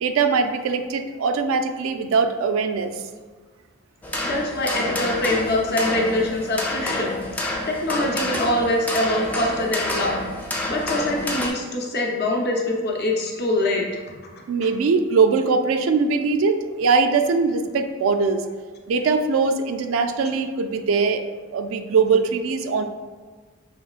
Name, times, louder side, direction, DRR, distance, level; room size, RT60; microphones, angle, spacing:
voice 1, 0.0-2.9 14.5-18.4 18.9-21.2 21.5-22.8, right 4 dB, 75° right, 7 dB, 0.3 m, -21 dB
sound 1, 4.0-11.5, left 1 dB, 10° left, 0.4 m, -28 dB
voice 2, 4.2-7.1 7.7-10.2 10.7-14.0, left 1 dB, 50° left, 0 dB, 0.7 m, -24 dB
5.5 x 3.0 x 2.4 m, 1.4 s
head